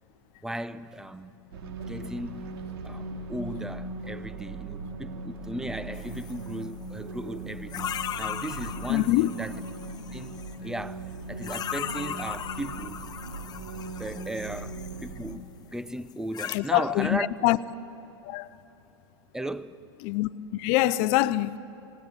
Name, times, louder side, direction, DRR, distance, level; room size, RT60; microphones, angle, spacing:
voice 1, 0.4-1.3 1.9-2.5 2.8-9.5 10.1-13.0 14.0-17.3 19.3-19.8, right 1 dB, 5° right, 0.8 m, -36 dB
sound 1, 1.5-15.4, right 2 dB, 65° right, 2.4 m, -39 dB
sound 2, 5.9-6.5 7.7-10.6 11.4-15.3 16.1-16.6, left 9 dB, 30° left, 1.2 m, -38 dB
voice 2, 8.9-9.3 16.5-17.6 18.2-18.5 20.0-21.6, left 17 dB, 50° left, 0.7 m, -24 dB
27.5 x 18.5 x 9.1 m
hypercardioid pair, 100°, 13 cm